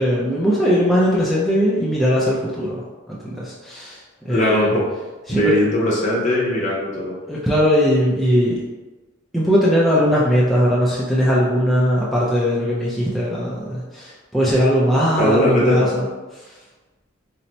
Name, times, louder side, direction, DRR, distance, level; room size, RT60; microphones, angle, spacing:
voice 1, 0.0-4.7 5.3-5.6 7.3-8.6 9.3-16.5, equal, ahead, -7 dB, 0.4 m, -19 dB
voice 2, 4.3-4.7 5.3-7.1 15.2-15.9, left 1 dB, 40° left, -5 dB, 0.9 m, -19 dB
2.7 x 2.1 x 4.0 m, 1.2 s
head